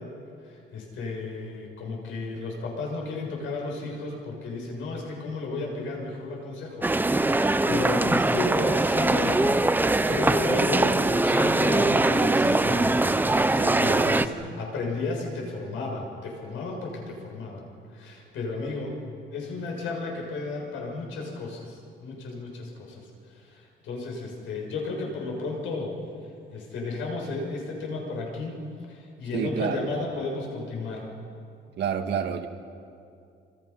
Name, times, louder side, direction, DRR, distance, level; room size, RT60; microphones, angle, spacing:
voice 1, 0.4-9.6 10.1-13.0 13.7-17.6 17.9-19.0 19.3-23.0 23.5-25.9 26.5-28.6 28.9-31.1, left 3 dB, 80° left, 0 dB, 7.1 m, -33 dB
sound 1, 6.8-14.3, right 2 dB, 10° right, 0.7 m, -22 dB
voice 2, 13.5-14.2 29.3-29.9 31.8-32.5, right 8 dB, 60° right, 5 dB, 2.1 m, -29 dB
27.5 x 26.0 x 5.8 m, 2.4 s
cardioid pair, 120°, 20 cm